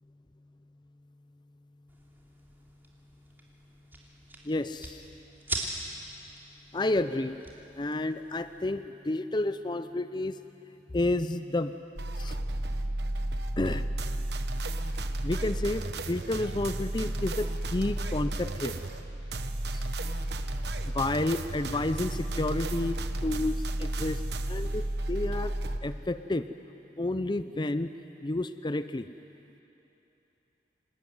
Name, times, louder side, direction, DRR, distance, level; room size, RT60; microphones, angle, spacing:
sound 1, 1.9-8.6, right 2 dB, 10° right, 3.1 m, -42 dB
voice 1, 4.4-5.0 6.7-7.4 7.8-10.4 10.9-11.7 12.2-12.4 13.6-13.8 15.2-18.8 19.7-19.8 20.9-25.6 25.8-26.5 27.0-27.9 28.2-29.1, left 2 dB, 25° left, 11 dB, 0.6 m, -30 dB
sound 2, 12.0-25.8, right 1 dB, 65° right, 1.2 m, -32 dB
27.0 x 18.5 x 9.5 m, 3.0 s
head